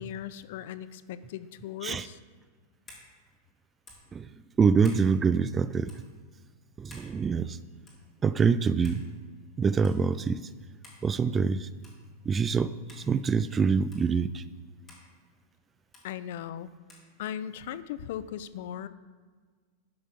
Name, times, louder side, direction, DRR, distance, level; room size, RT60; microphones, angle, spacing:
voice 1, 0.0-2.2 16.0-16.7 17.2-18.9, left 10 dB, 65° left, 15 dB, 0.6 m, -38 dB
sound 1, 1.9-2.1 2.9-3.1 3.9-4.1 4.8-5.1 5.8-6.0 6.9-7.1 7.9-8.1 8.8-9.0 9.8-10.0 10.8-11.0 11.8-12.0 12.9-13.1 13.9-14.1 14.9-15.1 15.9-16.1 16.9-17.1, left 2 dB, 25° left, 3.1 m, -51 dB
voice 2, 4.6-5.9 6.8-7.6 8.2-9.0 9.6-10.5 11.0-11.7 12.3-14.4, right 5 dB, 20° right, 15 dB, 0.3 m, -25 dB
11.5 x 5.2 x 6.6 m, 1.5 s
supercardioid pair, 135°, 0 cm